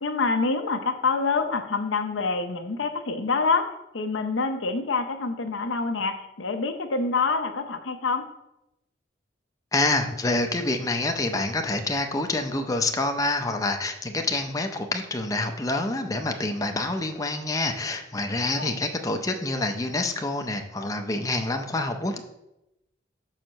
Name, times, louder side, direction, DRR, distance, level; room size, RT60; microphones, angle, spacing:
voice 1, 0.0-3.6 3.9-8.2 18.6-18.7, left 4 dB, 90° left, 7 dB, 0.7 m, -26 dB
voice 2, 9.7-22.2, left 2 dB, 20° left, 5 dB, 0.5 m, -27 dB
5.7 x 4.5 x 6.3 m, 0.89 s
head